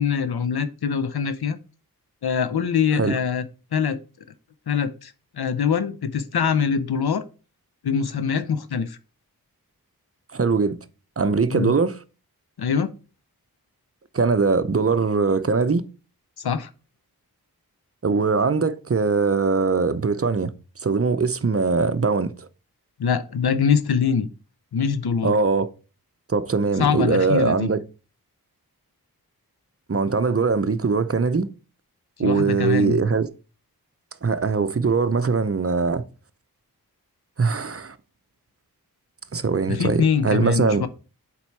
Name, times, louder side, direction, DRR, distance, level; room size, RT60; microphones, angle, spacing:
voice 1, 0.0-1.6 2.2-3.4 3.7-4.0 4.7-7.3 7.8-9.0 11.5-11.7 12.6-12.9 16.4-16.7 23.0-24.3 24.7-25.4 26.8-27.7 32.2-33.0 39.7-40.9, left 6 dB, 80° left, 0.6 m, -23 dB
voice 2, 10.3-10.8 11.2-12.0 14.1-15.8 18.0-20.5 20.8-22.5 25.2-25.7 26.3-27.8 29.9-31.5 32.2-33.3 34.2-36.0 37.4-38.0 39.3-40.9, right 4 dB, 35° right, 0.7 m, -21 dB
7.1 x 4.6 x 4.5 m
wide cardioid pair, 50°, 38 cm